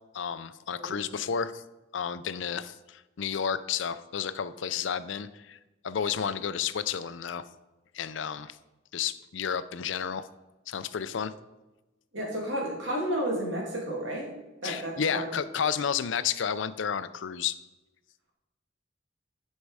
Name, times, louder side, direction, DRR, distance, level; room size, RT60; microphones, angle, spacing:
voice 1, 0.1-1.6 1.9-5.6 5.8-7.4 7.9-8.6 8.9-10.3 10.7-11.3 14.6-17.6, left 7 dB, 70° left, 14 dB, 0.5 m, -31 dB
voice 2, 12.1-14.3 14.6-15.3, right 1 dB, 70° right, -2 dB, 2.4 m, -32 dB
10.5 x 5.4 x 4.8 m, 1.1 s
head